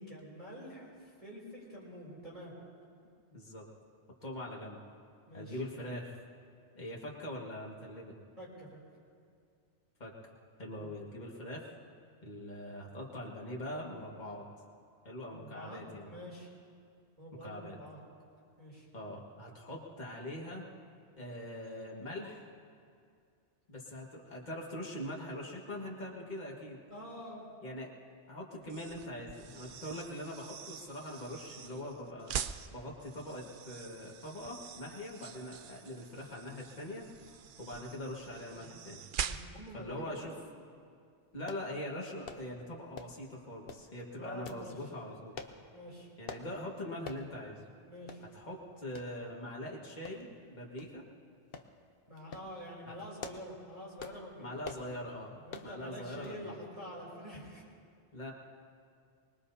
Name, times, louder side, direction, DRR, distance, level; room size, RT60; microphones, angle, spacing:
voice 1, 0.0-2.5 5.3-5.6 8.4-8.8 10.8-10.9 15.3-16.5 17.2-18.0 18.6-18.9 26.9-27.5 29.8-30.0 38.5-38.7 39.2-40.3 44.2-44.8 45.7-46.1 47.9-48.2 52.1-54.5 55.4-57.6, equal, 30° right, -6 dB, 5.3 m, -47 dB
voice 2, 3.3-3.7 4.2-4.8 5.3-6.2 6.8-8.1 10.0-10.1 10.6-11.7 12.2-14.4 15.0-16.1 17.4-17.8 18.9-20.7 21.2-22.5 23.7-26.8 27.6-27.9 28.3-32.3 32.7-37.1 37.6-39.0 39.7-40.3 41.3-45.4 46.2-47.7 48.3-51.0 52.8-52.9 54.4-55.4 55.6-56.5 58.1-58.3, left 1 dB, 40° left, -3 dB, 1.9 m, -42 dB
sound 1, 28.6-39.8, right 8 dB, 55° right, 0.6 m, -44 dB
sound 2, 41.5-41.7 42.2-42.5 42.9-43.2 43.7-43.9 44.4-44.7 45.3-45.6 46.3-46.5 47.0-47.3 47.6-47.7 48.1-48.2 48.9-49.1 50.0-50.4 50.8-50.9 51.5-51.7 52.2-52.5 53.0-53.5 54.0-54.2 54.6-54.9 55.5-55.7 56.2-56.4 56.7-56.8, left 5 dB, 55° left, 1.0 m, -45 dB
24.5 x 21.0 x 2.8 m, 2.3 s
omnidirectional pair, 1.2 m